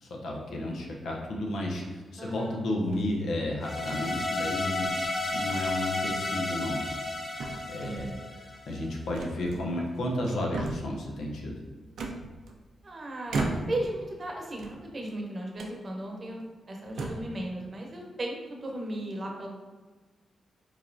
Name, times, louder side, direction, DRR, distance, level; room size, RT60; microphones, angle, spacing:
voice 1, 0.0-4.9 5.3-6.8 7.7-8.1 8.7-11.6, left 1 dB, 80° left, -1 dB, 0.7 m, -32 dB
voice 2, 2.2-2.6 7.8-8.2 12.8-13.4 13.7-19.5, right 1 dB, 45° right, 0 dB, 0.8 m, -36 dB
sound 1, 2.8-3.2 4.0-4.8 5.5-5.7 6.1-6.3 6.8-7.1 7.4-8.1 9.1-9.9 10.2-11.0 12.0-12.8 13.3-13.9 14.5-15.2 15.6-15.8 16.4-16.5 16.9-17.4, right 2 dB, 80° right, 0.4 m, -36 dB
sound 2, 3.6-8.8, left 2 dB, 35° left, 0.6 m, -32 dB
4.1 x 2.9 x 2.6 m, 1.3 s
cardioid pair, 55°, 0 cm